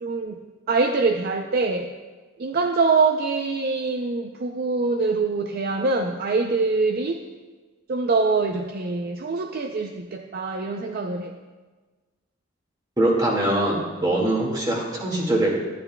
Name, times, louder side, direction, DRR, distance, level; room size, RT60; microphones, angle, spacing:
voice 1, 0.0-0.4 0.7-1.9 2.4-7.2 7.9-11.3, right 4 dB, 50° right, 4 dB, 0.4 m, -24 dB
voice 2, 13.0-15.6, right 1 dB, 20° right, -2 dB, 1.8 m, -22 dB
12.5 x 10.0 x 2.2 m, 1.3 s
head